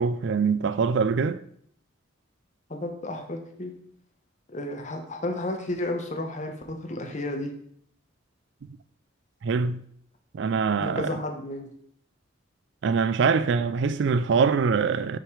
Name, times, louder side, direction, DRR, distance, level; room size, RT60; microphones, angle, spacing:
voice 1, 0.0-1.4 9.4-9.8 10.3-11.2 12.8-15.2, right 5 dB, 60° right, 0.3 m, -24 dB
voice 2, 2.7-3.7 4.5-7.5 10.8-11.7, left 1 dB, 35° left, 1.0 m, -32 dB
6.1 x 4.9 x 4.7 m
head